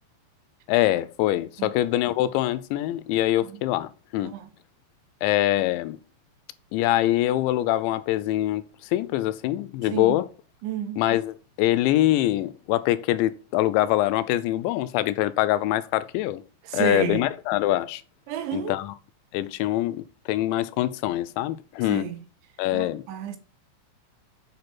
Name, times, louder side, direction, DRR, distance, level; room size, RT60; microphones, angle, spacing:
voice 1, 0.7-4.3 5.2-6.0 6.7-8.6 8.9-10.3 11.0-16.4 16.7-18.0 18.5-18.9 19.3-22.1 22.6-23.0, left 14 dB, 90° left, 3.0 m, -24 dB
voice 2, 4.2-4.5 9.9-10.2 10.6-11.0 16.6-17.3 18.3-18.8 21.9-22.2 22.7-23.4, right 9 dB, 85° right, 3.7 m, -31 dB
7.6 x 6.6 x 6.0 m
omnidirectional pair, 5.2 m